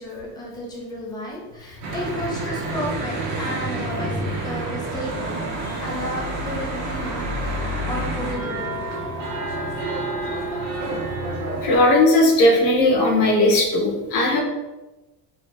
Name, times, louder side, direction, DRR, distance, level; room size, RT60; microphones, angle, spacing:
voice 1, 0.0-5.4 5.8-8.9, equal, 10° left, -4 dB, 0.3 m, -33 dB
Church bell / Traffic noise roadway noise, 1.8-11.8, right 1 dB, 50° right, 0.8 m, -28 dB
voice 2, 11.6-14.4, left 1 dB, 70° left, 1 dB, 0.8 m, -17 dB
2.7 x 2.6 x 3.2 m, 1.1 s
cardioid pair, 180°, 38 cm